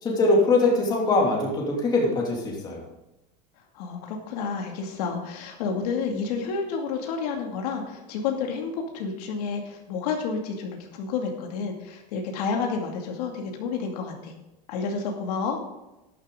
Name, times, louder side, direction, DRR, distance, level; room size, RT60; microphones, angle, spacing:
voice 1, 0.0-2.8, left 2 dB, 20° left, -2 dB, 2.8 m, -22 dB
voice 2, 3.7-14.3 14.7-15.6, left 5 dB, 70° left, 1 dB, 2.5 m, -30 dB
12.0 x 11.0 x 3.9 m, 0.97 s
supercardioid pair, 160°, 21 cm